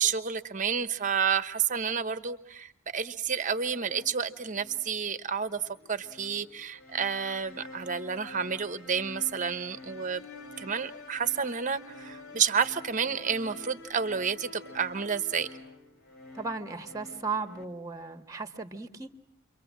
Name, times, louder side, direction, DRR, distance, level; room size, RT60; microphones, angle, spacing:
voice 1, 0.0-5.6 5.9-10.2 10.6-15.5, right 6 dB, 40° right, 1.1 m, -30 dB
sound 1, 3.7-17.6, left 2 dB, 70° left, 4.0 m, -48 dB
voice 2, 16.3-19.1, right 4 dB, 15° right, 1.5 m, -36 dB
29.5 x 24.0 x 7.5 m
head